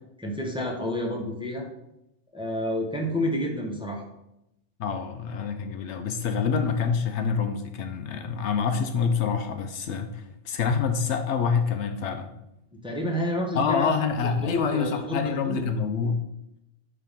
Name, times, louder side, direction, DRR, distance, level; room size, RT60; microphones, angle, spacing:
voice 1, 0.2-1.7 2.3-4.0 12.7-13.9 14.2-15.6, left 1 dB, 5° right, -1 dB, 1.0 m, -29 dB
voice 2, 4.8-12.3 13.5-16.2, left 6 dB, 75° left, 7 dB, 0.9 m, -26 dB
5.4 x 3.6 x 5.6 m, 0.85 s
omnidirectional pair, 1.2 m